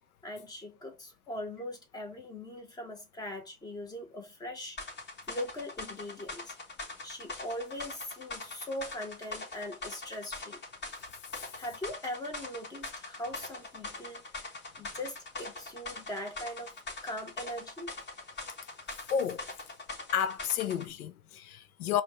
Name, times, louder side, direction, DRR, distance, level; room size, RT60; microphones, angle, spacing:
voice 1, 0.2-4.8 5.3-6.5 7.0-10.6 11.5-16.7 17.0-17.9, left 1 dB, 10° left, 1.2 m, -41 dB
sound 1, 4.8-20.9, left 3 dB, 25° left, 2.2 m, -43 dB
voice 2, 19.1-19.4 20.1-22.0, left 8 dB, 80° left, 0.6 m, -31 dB
5.0 x 2.5 x 3.1 m
hypercardioid pair, 120°, 43 cm